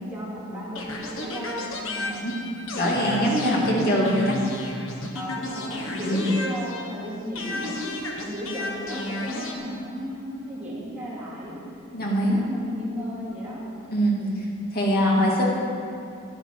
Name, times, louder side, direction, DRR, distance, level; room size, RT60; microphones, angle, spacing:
voice 1, 0.1-0.9 1.2-2.3 3.2-3.7 5.1-11.6 12.1-13.6 14.2-14.3, equal, 10° right, -9 dB, 3.0 m, -34 dB
sound 1, 0.8-7.0 7.4-9.6, left 2 dB, 65° left, 1.3 m, -34 dB
voice 2, 2.0-2.3 2.7-4.4 6.0-6.3 11.9-12.4 13.9-14.2 14.7-15.4, equal, 45° left, -3 dB, 2.1 m, -22 dB
12.0 x 9.8 x 4.6 m, 2.5 s
head